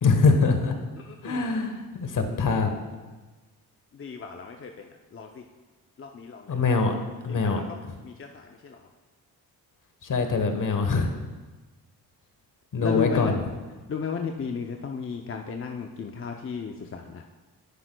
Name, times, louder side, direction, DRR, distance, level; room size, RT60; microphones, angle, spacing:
voice 1, 0.0-0.7 1.2-2.7 6.5-6.9 7.2-7.6 10.1-11.1 12.7-13.4, left 4 dB, 55° left, 5 dB, 1.2 m, -23 dB
voice 2, 0.9-1.5 3.9-5.4 6.0-6.6 7.3-7.8 8.0-8.8 12.8-13.4 13.9-17.2, left 6 dB, 35° left, 3 dB, 0.6 m, -34 dB
10.0 x 9.4 x 2.3 m, 1.3 s
cardioid pair, 90°, 38 cm